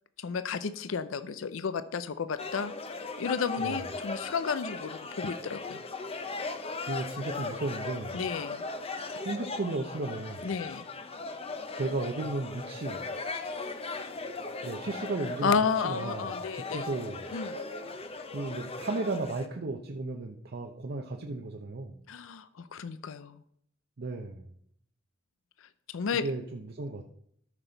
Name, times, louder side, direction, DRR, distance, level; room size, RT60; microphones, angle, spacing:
voice 1, 0.2-2.7 3.2-5.8 8.1-8.6 10.4-10.9 15.4-16.9 17.3-17.6 22.1-23.4 25.6-26.3, left 5 dB, 80° left, 13 dB, 0.5 m, -32 dB
sound 1, 2.4-19.5, left 3 dB, 30° left, 0.7 m, -38 dB
voice 2, 6.9-8.2 9.2-10.5 11.7-13.0 14.6-15.6 15.8-17.3 18.3-22.0 24.0-24.5 26.2-27.1, right 2 dB, 55° right, 3 dB, 0.7 m, -35 dB
13.0 x 6.0 x 3.9 m, 0.69 s
head